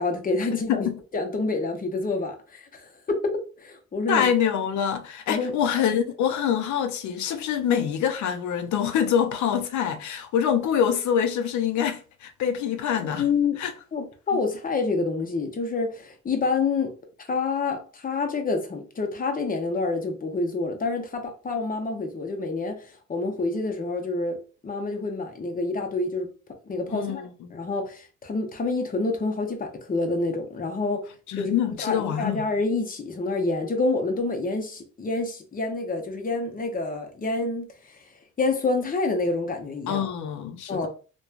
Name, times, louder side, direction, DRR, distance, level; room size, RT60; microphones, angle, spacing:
voice 1, 0.0-0.9 1.1-4.3 5.3-5.5 13.1-13.6 13.9-16.9 17.3-24.4 24.6-26.3 26.7-27.2 27.5-31.0 31.4-38.0 38.4-40.1 40.7-40.9, left 3 dB, 30° left, 0.7 m, -27 dB
voice 2, 0.5-1.0 4.1-13.2 13.6-13.7 26.9-27.3 31.3-32.4 39.9-40.9, left 8 dB, 70° left, 0.6 m, -25 dB
2.9 x 2.2 x 2.4 m
cardioid pair, 90°, 30 cm